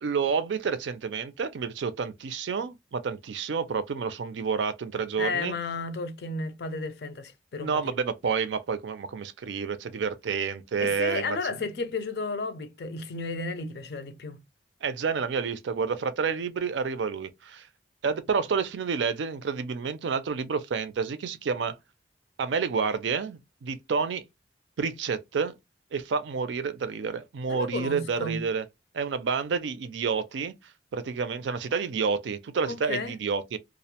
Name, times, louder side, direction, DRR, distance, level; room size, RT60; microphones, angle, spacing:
voice 1, 0.0-5.5 7.6-11.6 14.8-17.7 18.0-21.7 22.4-24.2 24.8-25.5 25.9-28.6 28.9-30.5 30.9-33.6, right 5 dB, 85° right, 0.4 m, -29 dB
voice 2, 5.2-7.9 10.8-14.4 27.5-28.4 32.7-33.1, left 3 dB, 60° left, 0.4 m, -33 dB
2.4 x 2.1 x 2.8 m
head